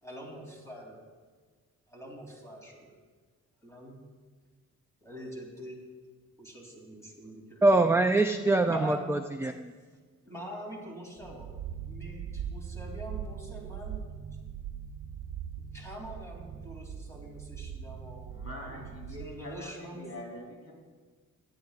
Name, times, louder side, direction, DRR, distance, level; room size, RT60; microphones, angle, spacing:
voice 1, 0.0-1.0 1.9-2.9 3.6-4.0 5.0-5.8 6.4-7.9 8.7-9.0 10.2-11.5 11.8-14.1 15.7-18.8 19.2-20.1, equal, 10° left, -2 dB, 2.9 m, -43 dB
voice 2, 7.6-9.7, right 2 dB, 10° right, 6 dB, 0.3 m, -24 dB
sound 1, 11.2-19.6, right 8 dB, 85° right, 0.8 m, -41 dB
voice 3, 18.3-20.7, left 1 dB, 45° left, -2 dB, 3.4 m, -44 dB
18.0 x 11.5 x 2.4 m, 1.5 s
wide cardioid pair, 135°, 32 cm